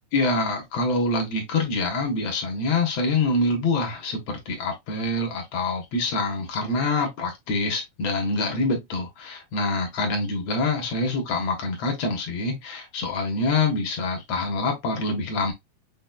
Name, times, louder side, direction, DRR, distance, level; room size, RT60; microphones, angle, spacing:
voice 1, 0.1-15.5, left 2 dB, 60° left, 2.2 m, -25 dB
6.6 x 3.0 x 2.2 m
omnidirectional pair, 3.7 m